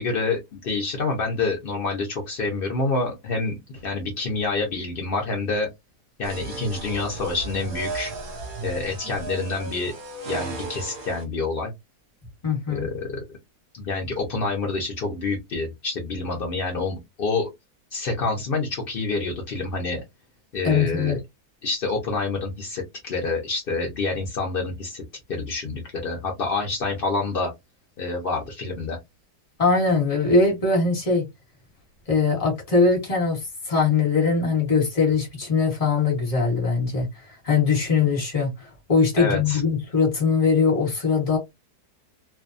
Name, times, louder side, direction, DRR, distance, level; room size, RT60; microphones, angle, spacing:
voice 1, 0.0-5.7 6.2-8.1 8.6-9.9 10.2-11.7 12.7-13.2 13.7-17.5 17.9-20.0 20.5-21.2 21.6-25.0 25.3-27.5 28.0-29.0 39.2-39.6, left 3 dB, 60° left, 0.5 m, -27 dB
sound 1, 6.2-11.2, right 3 dB, 45° right, 0.7 m, -35 dB
voice 2, 12.4-12.9 20.6-21.2 29.6-31.2 32.1-37.1 37.4-41.4, left 4 dB, 25° left, 1.1 m, -21 dB
2.6 x 2.2 x 2.4 m
omnidirectional pair, 1.8 m